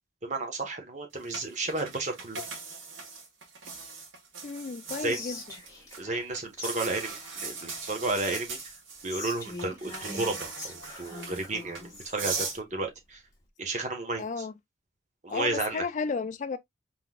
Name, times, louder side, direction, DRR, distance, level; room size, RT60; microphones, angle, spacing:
voice 1, 0.2-2.4 5.0-5.2 6.0-8.6 9.0-13.2 13.6-14.4 15.2-15.8, right 2 dB, 40° right, 1.3 m, -32 dB
sound 1, 1.3-6.0 6.3-12.6, right 4 dB, 85° right, 1.6 m, -39 dB
voice 2, 4.4-5.4 14.2-14.5 15.3-16.6, left 4 dB, 40° left, 0.3 m, -33 dB
Whispering, 5.1-6.3 6.6-6.7 7.0-8.5 9.1-12.2, left 3 dB, 15° left, 1.7 m, -43 dB
4.5 x 3.9 x 2.4 m
head